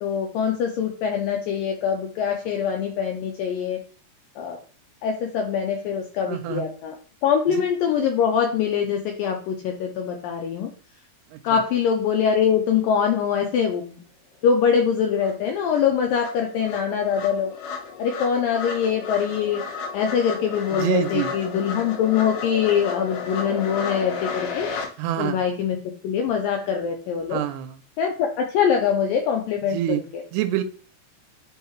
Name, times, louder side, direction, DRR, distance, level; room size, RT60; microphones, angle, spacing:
voice 1, 0.0-3.8 4.4-4.6 5.0-7.0 7.2-10.7 11.4-14.0 14.4-17.5 18.0-19.6 19.9-24.7 25.2-25.8 26.0-27.4 28.0-30.2, left 7 dB, 90° left, 3 dB, 2.0 m, -23 dB
voice 2, 6.3-6.7 7.5-7.6 11.3-11.6 20.7-21.4 25.0-25.4 27.3-27.8 29.7-30.0 30.3-30.6, right 12 dB, 85° right, 10 dB, 2.4 m, -26 dB
sound 1, 14.8-14.9 15.2-24.9, left 5 dB, 70° left, 2.1 m, -33 dB
10.5 x 3.6 x 3.0 m, 0.41 s
omnidirectional pair, 4.7 m